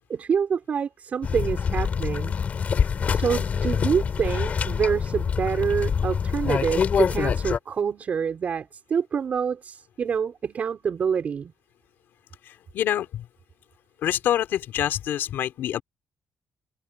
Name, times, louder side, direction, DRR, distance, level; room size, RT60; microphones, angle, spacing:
voice 1, 0.1-2.4 3.1-11.5, right 7 dB, 45° right, 5.0 m, -26 dB
sound 1, 1.2-7.6, left 6 dB, 45° left, 3.6 m, -25 dB
voice 2, 12.5-13.3 14.0-15.8, left 11 dB, 75° left, 3.4 m, -26 dB
cardioid pair, 125°, 4 cm